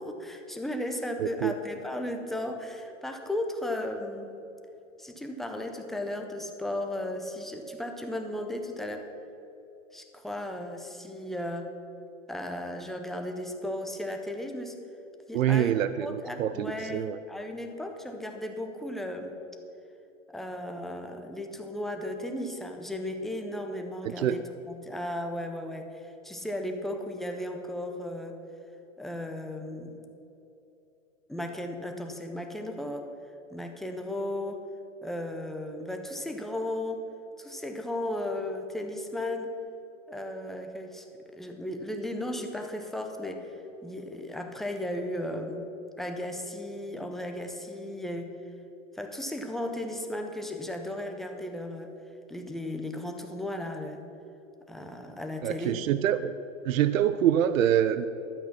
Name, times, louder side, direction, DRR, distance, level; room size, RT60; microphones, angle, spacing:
voice 1, 0.0-4.3 5.0-9.1 9.9-11.7 12.3-14.8 15.3-15.7 16.0-19.3 20.3-24.4 24.7-28.4 29.0-29.9 31.3-33.1 33.5-34.6 35.0-37.1 37.4-39.5 40.1-43.5 43.8-45.7 46.0-48.3 48.9-51.9 52.3-54.0 54.7-55.8, left 1 dB, ahead, 4 dB, 0.5 m, -35 dB
voice 2, 1.2-1.5 15.3-17.2 24.1-24.4 55.4-56.3 56.7-58.1, right 10 dB, 80° right, 13 dB, 0.6 m, -25 dB
12.0 x 8.1 x 5.9 m, 3.0 s
hypercardioid pair, 130°, 40 cm